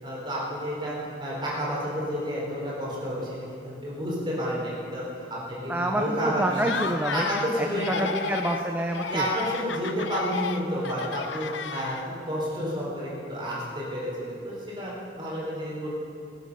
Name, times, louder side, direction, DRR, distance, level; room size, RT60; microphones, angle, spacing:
voice 1, 0.0-6.6 7.1-8.1 9.1-15.9, equal, 25° right, -5 dB, 4.5 m, -31 dB
voice 2, 5.7-7.3 7.6-9.3, right 1 dB, 10° right, 2 dB, 0.7 m, -28 dB
Laughter, 6.5-7.5 7.8-8.6 8.9-12.3, left 6 dB, 75° left, 0.7 m, -33 dB
19.5 x 10.5 x 5.6 m, 2.6 s
head